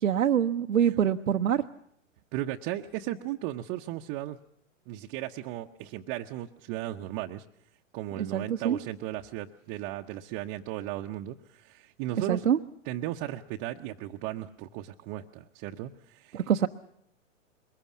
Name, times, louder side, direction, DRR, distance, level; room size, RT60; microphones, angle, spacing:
voice 1, 0.0-1.6 8.3-8.8 12.3-12.6 16.3-16.7, right 9 dB, 85° right, 3 dB, 0.8 m, -25 dB
voice 2, 2.3-4.4 4.9-7.4 7.9-12.5 12.9-16.4, right 14 dB, 30° right, 2 dB, 0.8 m, -36 dB
22.5 x 20.5 x 7.3 m, 0.71 s
hypercardioid pair, 115°, 39 cm